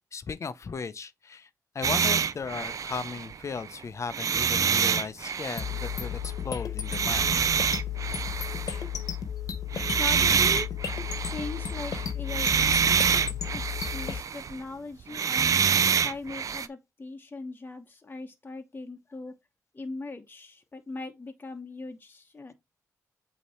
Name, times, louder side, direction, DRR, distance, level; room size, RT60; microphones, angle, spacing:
voice 1, 0.1-1.5 1.7-7.4 13.3-13.4, left 5 dB, 50° left, 0.7 m, -36 dB
sound 1, 1.8-3.7 4.1-6.2 6.9-8.8 9.7-14.6 15.0-16.7, right 7 dB, 60° right, 0.5 m, -26 dB
sound 2, 5.6-14.2, left 9 dB, 75° left, 1.1 m, -33 dB
voice 2, 10.0-10.7 11.3-15.6 16.0-19.3 19.7-22.5, left 3 dB, 30° left, 1.1 m, -40 dB
8.2 x 3.0 x 4.3 m
cardioid pair, 65°, 6 cm